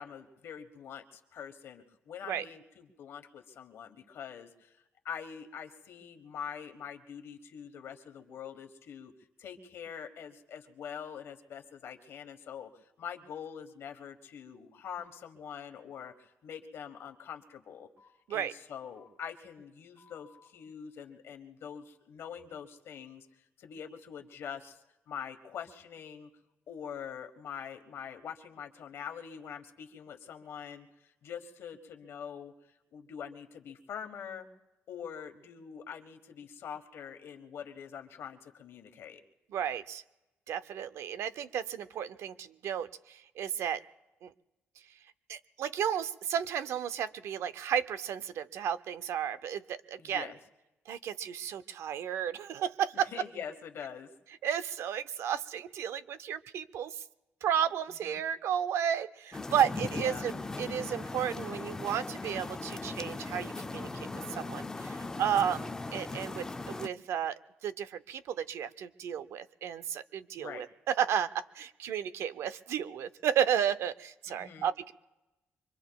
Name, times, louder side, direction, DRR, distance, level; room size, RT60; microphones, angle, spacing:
voice 1, 0.0-4.8 5.0-9.1 9.4-17.9 18.3-24.8 25.1-26.3 26.7-32.5 32.9-34.5 34.9-39.2 50.0-50.4 52.9-54.1 58.0-58.2 59.9-60.3 70.4-70.6 74.3-74.7, left 8 dB, 70° left, 5 dB, 1.3 m, -44 dB
sound 1, 15.0-15.1 16.0-16.1 17.0-17.1 18.0-18.1 18.9-19.1 19.9-20.5, left 5 dB, 45° right, 7.0 m, -60 dB
voice 2, 39.5-40.0 40.5-43.8 44.2-44.3 45.3-50.3 50.9-53.1 54.4-57.0 57.4-63.9 64.3-74.9, right 9 dB, 80° right, 14 dB, 0.5 m, -33 dB
sound 2, 59.3-66.9, left 3 dB, 15° left, 0.4 m, -39 dB
25.0 x 23.5 x 2.3 m, 0.99 s
cardioid pair, 145°, 5 cm